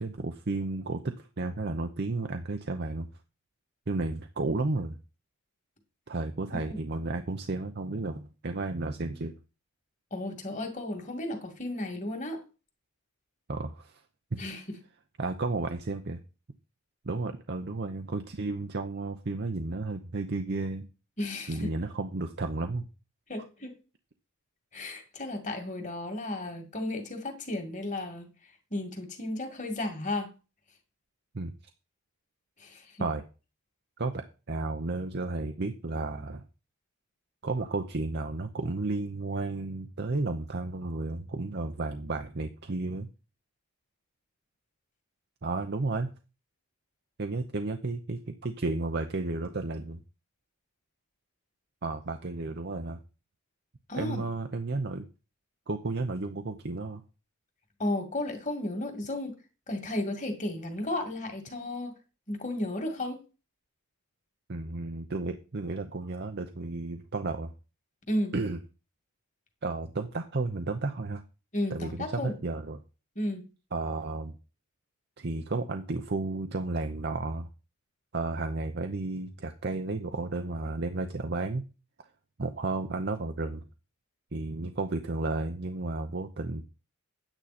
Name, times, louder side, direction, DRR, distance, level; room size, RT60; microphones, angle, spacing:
voice 1, 0.0-3.1 3.9-5.0 6.1-9.3 13.5-14.0 14.3-14.4 15.2-16.2 17.0-20.9 21.5-22.9 31.3-31.5 33.0-33.2 34.0-36.4 37.4-43.1 45.4-46.1 47.2-50.0 51.8-53.0 53.9-55.1 55.7-57.0 64.5-67.5 68.3-68.6 69.6-71.2 71.7-72.8 73.7-74.3 75.2-77.5 78.1-81.6 82.4-83.6 84.3-86.6, right 3 dB, 50° right, 6 dB, 0.8 m, -32 dB
voice 2, 10.1-12.4 14.4-14.8 21.2-21.7 23.3-23.8 24.7-28.3 28.7-30.3 32.6-32.8 53.9-54.2 57.8-59.3 59.7-61.9 62.3-63.2 68.1-68.3 71.5-72.3 73.2-73.5, left 1 dB, 35° left, 4 dB, 2.2 m, -33 dB
9.7 x 9.1 x 4.2 m, 0.32 s
head